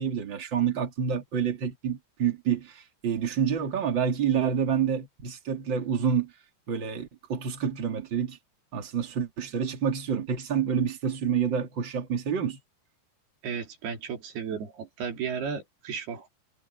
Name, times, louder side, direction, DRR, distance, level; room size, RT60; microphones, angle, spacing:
voice 1, 0.0-2.7 3.0-6.3 6.7-8.4 8.7-12.6, right 7 dB, 35° right, 2.3 m, -28 dB
voice 2, 13.4-16.3, right 6 dB, 55° right, 5.3 m, -34 dB
omnidirectional pair, 5.5 m